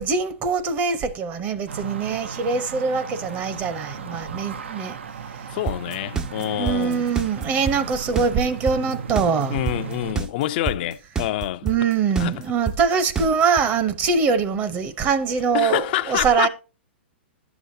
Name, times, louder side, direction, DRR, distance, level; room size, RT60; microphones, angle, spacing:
voice 1, 0.0-5.0 5.4-5.5 6.5-9.6 11.6-16.5, right 5 dB, 30° right, 0.8 m, -23 dB
sound 1, 1.7-10.1, right 6 dB, 80° right, 0.6 m, -35 dB
voice 2, 5.5-7.1 9.5-11.7 12.2-12.3 15.5-16.5, left 14 dB, 50° left, 0.4 m, -26 dB
sound 2, 5.7-13.6, right 6 dB, 10° right, 0.4 m, -27 dB
11.0 x 7.0 x 2.7 m
hypercardioid pair, 125°, 6 cm